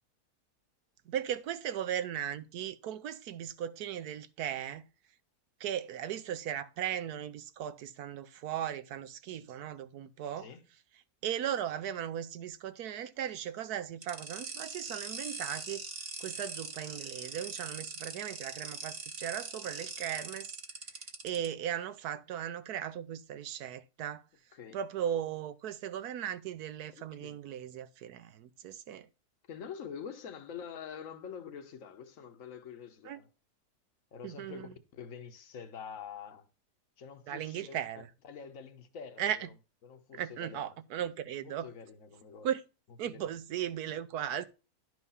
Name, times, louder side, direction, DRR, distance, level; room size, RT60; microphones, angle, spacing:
voice 1, 1.1-4.9 5.6-10.5 11.2-15.8 16.2-20.6 21.2-24.2 24.7-29.1 33.1-33.2 34.2-34.7 37.3-38.1 39.2-39.4 40.1-41.7 42.4-42.6 43.0-44.5, right 10 dB, 75° right, 1.2 m, -37 dB
sound 1, 14.0-21.5, right 3 dB, 40° right, 1.4 m, -42 dB
voice 2, 29.5-33.3 34.1-36.5 37.0-39.5 39.8-40.8 41.4-42.5 43.1-43.3, left 7 dB, 55° left, 1.2 m, -46 dB
11.0 x 4.6 x 5.5 m
omnidirectional pair, 1.7 m